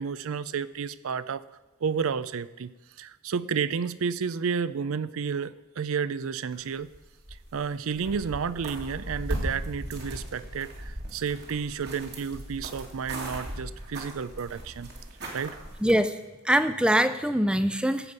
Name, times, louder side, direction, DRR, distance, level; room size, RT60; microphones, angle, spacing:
voice 1, 0.0-1.4 1.8-2.7 3.0-6.9 7.5-14.9 15.3-15.6, right 6 dB, 80° right, 17 dB, 0.5 m, -31 dB
sound 1, 6.5-7.6 7.9-15.9, equal, 50° right, 2.4 m, -38 dB
voice 2, 15.8-16.2 16.4-18.1, equal, 5° right, 11 dB, 0.4 m, -23 dB
15.0 x 5.3 x 8.0 m, 1.1 s
head